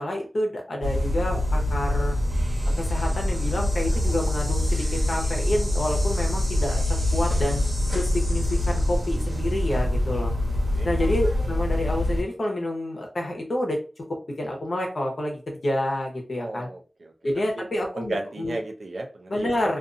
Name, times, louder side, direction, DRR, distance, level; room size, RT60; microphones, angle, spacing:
voice 1, 0.0-2.2 2.8-7.6 7.9-10.3 10.8-13.8 14.1-16.7 17.2-18.6 19.3-19.8, left 1 dB, 75° left, 1 dB, 0.9 m, -28 dB
sound 1, 0.8-12.2, left 1 dB, 55° right, 1.1 m, -24 dB
voice 2, 16.4-17.1 17.5-17.6 17.9-19.5, right 2 dB, 85° right, 1 dB, 0.5 m, -34 dB
2.5 x 2.5 x 2.5 m, 0.35 s
wide cardioid pair, 60°, 0 cm